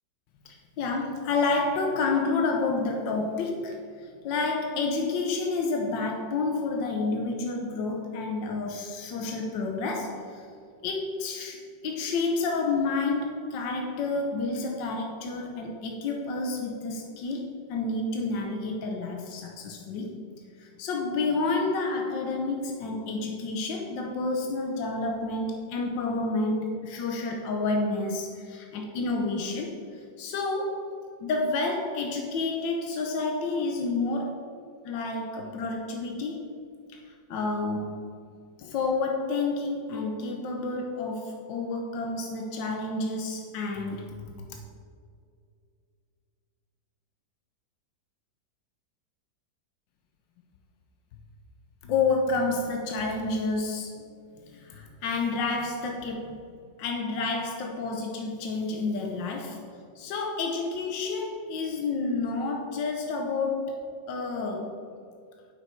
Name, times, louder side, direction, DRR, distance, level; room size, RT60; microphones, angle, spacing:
voice 1, 0.4-10.5 10.8-20.2 20.6-30.9 31.2-34.5 34.8-36.5 36.9-38.0 38.6-44.6 51.8-54.1 54.5-56.4 56.8-59.6 59.9-64.8, left 3 dB, 80° left, 2 dB, 1.5 m, -30 dB
10.5 x 6.0 x 4.5 m, 2.3 s
omnidirectional pair, 2.0 m